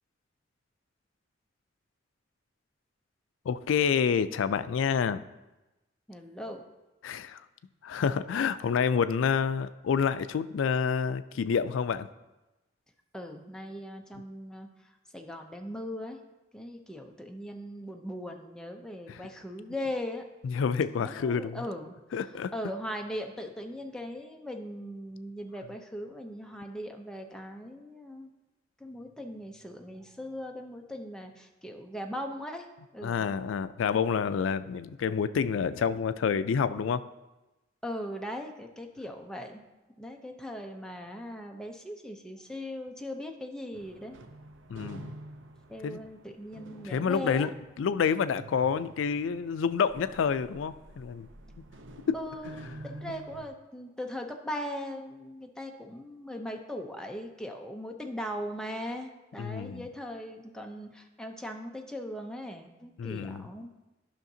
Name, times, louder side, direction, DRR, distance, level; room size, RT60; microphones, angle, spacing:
voice 1, 3.5-5.2 7.0-7.5 7.8-12.1 19.1-19.2 20.4-21.6 22.1-22.5 33.0-37.0 44.7-45.2 45.8-46.0 46.8-47.5 47.8-51.3 59.4-59.9 63.0-63.5, left 6 dB, 85° left, 13 dB, 0.3 m, -28 dB
voice 2, 6.1-6.6 13.1-14.7 15.1-16.2 16.5-20.2 21.0-21.9 22.5-28.3 28.8-32.7 32.9-33.3 37.8-39.6 40.0-44.2 45.7-47.5 52.1-63.7, equal, 5° left, 3 dB, 0.6 m, -39 dB
sound 1, 43.7-53.5, right 1 dB, 70° right, 0.6 m, -49 dB
12.0 x 5.7 x 2.7 m, 1.0 s
head